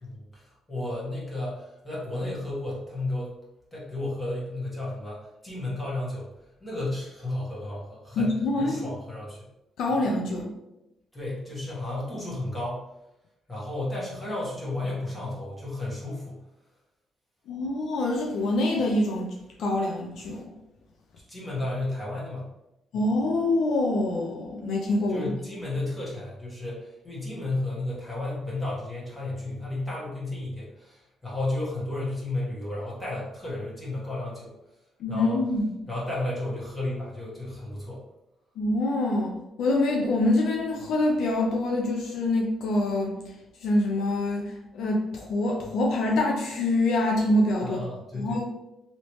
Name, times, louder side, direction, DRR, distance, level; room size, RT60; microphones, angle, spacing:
voice 1, 0.0-3.3 3.7-6.3 6.6-8.3 8.6-9.4 11.1-12.9 13.5-16.4 21.3-22.5 22.9-23.0 25.1-34.5 35.1-35.4 35.9-38.0 47.6-48.4, left 2 dB, 20° left, -6 dB, 1.4 m, -33 dB
voice 2, 8.2-8.8 9.8-10.5 17.5-20.5 22.9-25.3 35.0-35.8 38.6-43.2 43.6-47.8 48.1-48.4, left 2 dB, 75° left, 0 dB, 0.5 m, -25 dB
3.1 x 2.8 x 3.1 m, 0.90 s
cardioid pair, 90°, 0 cm